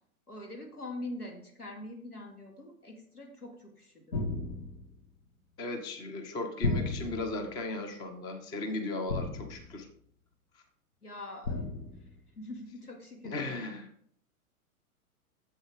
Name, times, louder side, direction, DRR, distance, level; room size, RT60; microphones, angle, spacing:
voice 1, 0.3-4.2 11.0-11.6 12.0-12.1 12.4-13.7, left 1 dB, 85° left, 2 dB, 2.2 m, -44 dB
sound 1, 4.1-4.9 6.6-7.4 9.1-9.8 11.4-12.1, left 2 dB, 70° left, 1.7 m, -33 dB
voice 2, 5.6-9.9 10.5-10.6 13.2-13.9, left 2 dB, 10° left, 8 dB, 0.4 m, -36 dB
10.5 x 7.4 x 3.4 m, 0.65 s
figure-of-eight pair, 100°, 44 cm